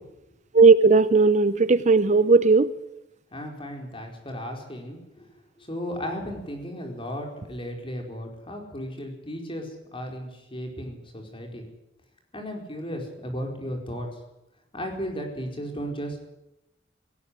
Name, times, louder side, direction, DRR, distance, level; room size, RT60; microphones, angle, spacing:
voice 1, 0.5-2.7, right 4 dB, 40° right, 14 dB, 0.7 m, -17 dB
voice 2, 3.3-5.3 5.6-11.6 12.3-14.1 14.7-16.2, equal, 30° left, 3 dB, 4.7 m, -35 dB
18.0 x 17.0 x 9.9 m, 0.88 s
head